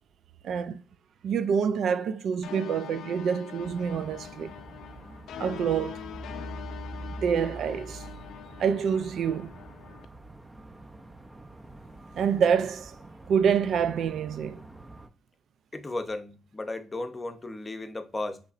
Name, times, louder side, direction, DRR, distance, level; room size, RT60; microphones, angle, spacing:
voice 1, 0.4-0.8 1.2-4.5 5.4-6.0 7.1-8.1 8.6-9.5 12.2-12.9 13.3-14.6, right 7 dB, 65° right, 0.4 m, -27 dB
sound 1, 2.4-10.0, left 10 dB, 80° left, 0.4 m, -43 dB
sound 2, 3.6-15.1, right 2 dB, 15° right, 0.6 m, -45 dB
voice 2, 15.7-18.4, left 2 dB, 25° left, 0.7 m, -35 dB
5.6 x 3.2 x 2.5 m
cardioid pair, 90°, 0 cm